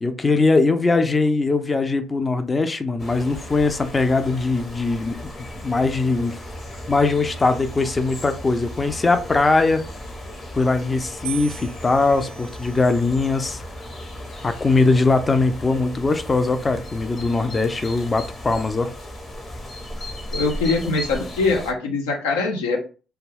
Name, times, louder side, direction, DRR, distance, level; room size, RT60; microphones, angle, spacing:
voice 1, 0.0-5.2 5.6-6.4 6.9-9.8 10.5-13.6 14.4-18.9, left 3 dB, 25° left, 0.4 m, -21 dB
sound 1, 3.0-21.7, left 1 dB, 45° left, 0.9 m, -36 dB
sound 2, 11.2-13.5 14.3-14.8, right 11 dB, 85° right, 0.4 m, -40 dB
voice 2, 20.3-22.8, left 3 dB, 85° left, 0.5 m, -22 dB
2.3 x 2.2 x 3.3 m
hypercardioid pair, 55°, 0 cm